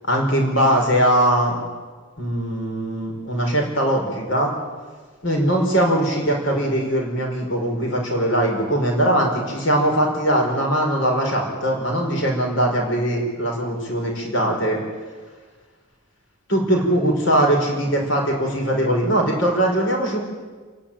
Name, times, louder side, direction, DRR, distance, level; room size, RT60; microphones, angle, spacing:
voice 1, 0.0-1.6 2.2-4.5 5.2-14.8 16.5-20.2, right 1 dB, 65° left, 1 dB, 5.4 m, -21 dB
29.0 x 11.5 x 8.9 m, 1.4 s
head